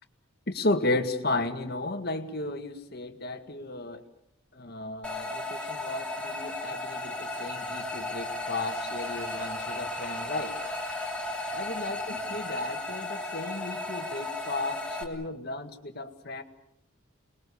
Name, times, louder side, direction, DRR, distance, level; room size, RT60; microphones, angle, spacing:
voice 1, 0.5-4.0 4.5-10.6 11.5-16.4, left 2 dB, 50° left, 7 dB, 2.0 m, -34 dB
sound 1, 5.0-15.0, left 2 dB, 5° left, 3.1 m, -35 dB
30.0 x 21.0 x 7.1 m, 0.76 s
head